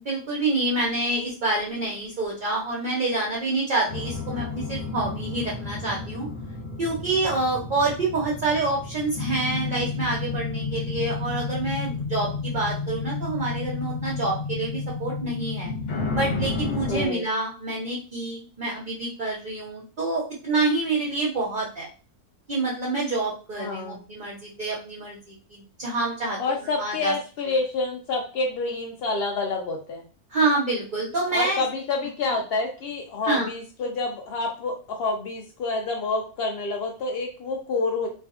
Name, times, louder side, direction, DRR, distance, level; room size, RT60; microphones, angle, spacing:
voice 1, 0.0-6.3 6.8-15.7 16.1-21.9 22.5-27.1 30.3-31.6 33.3-33.5, right 2 dB, 55° right, -3 dB, 0.5 m, -27 dB
sound 1, 3.9-17.1, left 3 dB, 60° left, 0.9 m, -31 dB
voice 2, 16.9-17.2 23.6-24.0 26.4-30.0 31.3-38.1, left 3 dB, 80° left, 2 dB, 0.5 m, -28 dB
2.5 x 2.3 x 2.3 m, 0.36 s
omnidirectional pair, 1.6 m